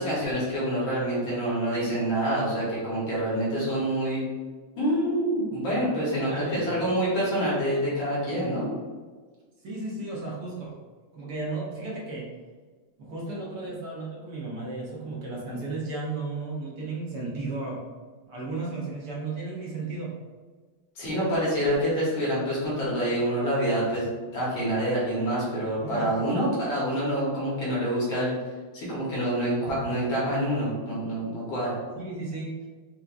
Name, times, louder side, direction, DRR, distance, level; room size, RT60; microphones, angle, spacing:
voice 1, 0.0-4.2 4.8-8.7 21.0-28.4 28.7-31.8, right 1 dB, 75° left, -8 dB, 1.9 m, -27 dB
voice 2, 5.9-6.9 9.6-10.7 11.1-12.3 13.0-17.8 18.3-20.1 25.8-26.3 32.0-32.5, right 3 dB, 60° right, -4 dB, 1.3 m, -34 dB
5.6 x 2.2 x 2.5 m, 1.4 s
omnidirectional pair, 2.2 m